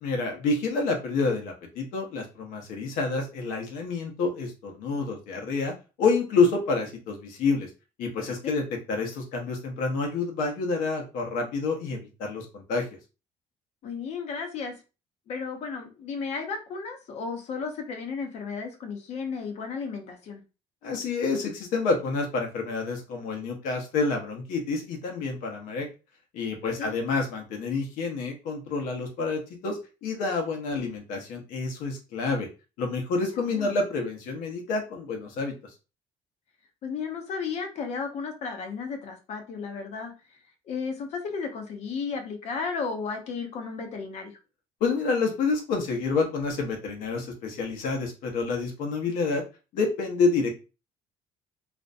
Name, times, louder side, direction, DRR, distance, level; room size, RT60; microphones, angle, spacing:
voice 1, 0.0-7.7 8.0-12.8 20.8-25.9 26.3-32.5 32.8-35.5 44.8-49.4 49.7-50.5, left 4 dB, 90° left, 2 dB, 0.8 m, -28 dB
voice 2, 13.8-14.8 15.3-20.4 26.8-26.9 33.5-33.7 36.8-40.4 40.7-44.3, left 5 dB, 55° left, 4 dB, 0.7 m, -34 dB
2.5 x 2.1 x 2.5 m, 0.31 s
cardioid pair, 150°, 13 cm